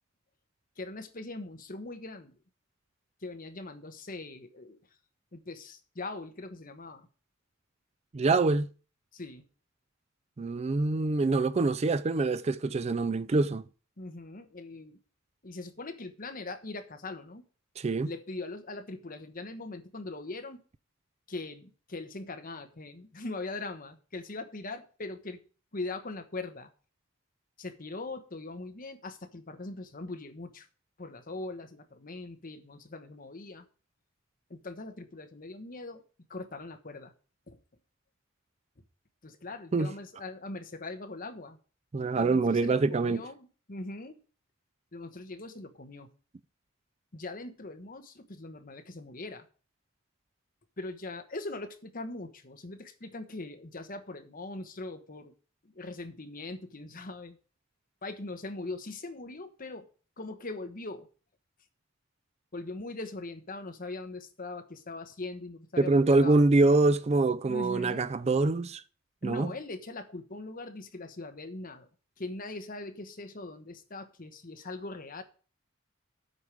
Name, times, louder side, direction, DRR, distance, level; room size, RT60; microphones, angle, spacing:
voice 1, 0.8-2.3 3.2-4.8 5.3-7.1 9.1-9.5 14.0-15.0 15.4-17.4 18.0-20.6 21.3-25.4 25.7-26.7 27.6-30.7 31.0-33.6 34.5-36.0 36.3-37.1 37.5-37.6 39.2-41.6 42.2-44.2 44.9-46.1 47.1-49.4 50.8-55.3 55.6-57.4 58.0-59.9 60.2-61.1 62.5-65.9 66.2-66.4 67.5-68.1 69.2-71.9 72.2-75.2, left 2 dB, 45° left, 1.2 m, -41 dB
voice 2, 8.1-8.7 10.4-13.6 17.8-18.1 39.7-39.9 41.9-43.2 65.8-68.8 69.2-69.5, right 3 dB, 30° right, 0.4 m, -25 dB
8.1 x 5.0 x 7.5 m
head